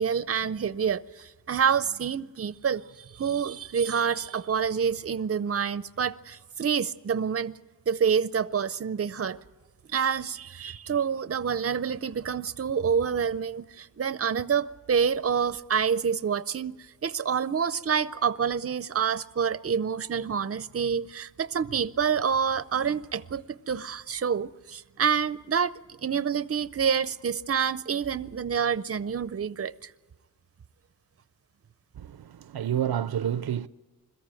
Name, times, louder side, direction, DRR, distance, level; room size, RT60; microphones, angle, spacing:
voice 1, 0.0-7.5 7.9-9.4 9.9-25.7 26.0-29.9, right 7 dB, 40° right, 0.6 m, -27 dB
voice 2, 32.0-33.7, right 10 dB, 80° right, 0.6 m, -29 dB
21.5 x 14.0 x 9.0 m
wide cardioid pair, 80°, 37 cm